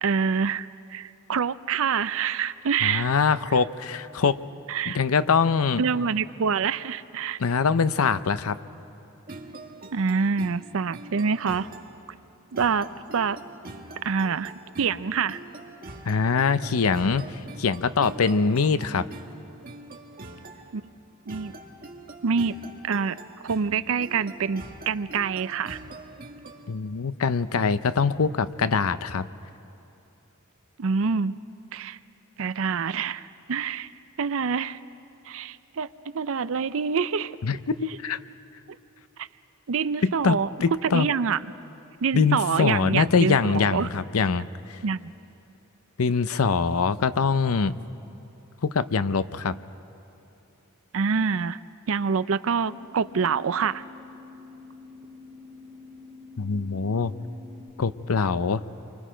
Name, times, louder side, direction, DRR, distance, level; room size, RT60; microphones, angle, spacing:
voice 1, 0.0-3.1 4.7-5.0 5.8-7.4 9.9-11.7 12.5-13.4 14.0-14.5 14.8-15.4 20.7-20.8 21.3-21.5 22.2-22.6 22.8-23.2 23.4-25.8 30.8-31.3 31.7-32.0 32.4-33.9 34.2-34.8 35.3-35.9 36.1-37.3 39.2-39.3 39.7-40.5 40.8-41.5 42.0-43.9 44.8-45.1 50.9-51.6 51.9-53.8, right 6 dB, 70° right, 15 dB, 0.5 m, -26 dB
voice 2, 2.8-4.4 4.9-5.8 7.4-8.6 16.1-17.3 17.6-19.1 26.7-29.3 37.4-38.2 40.0-41.1 42.1-44.8 46.0-47.7 48.6-49.6 56.4-57.1 57.8-58.6, left 5 dB, 90° left, 14 dB, 0.6 m, -23 dB
sound 1, 9.3-26.7, right 2 dB, 45° right, 1.5 m, -44 dB
sound 2, 52.7-57.7, left 4 dB, 25° left, 6.8 m, -47 dB
29.5 x 24.5 x 5.1 m, 3.0 s
head